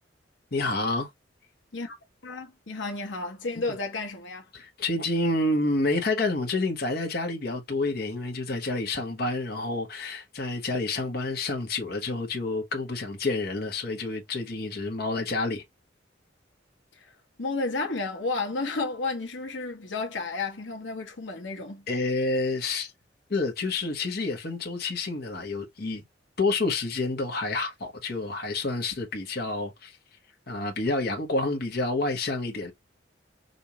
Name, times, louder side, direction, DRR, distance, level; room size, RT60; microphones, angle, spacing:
voice 1, 0.5-1.1 4.5-15.6 21.9-22.9 23.3-26.0 26.4-30.0 30.5-32.7, left 2 dB, 55° left, 1.2 m, -29 dB
voice 2, 2.2-4.4 17.0-17.1 17.4-21.8, left 3 dB, 90° left, 1.1 m, -32 dB
5.2 x 2.6 x 2.9 m
head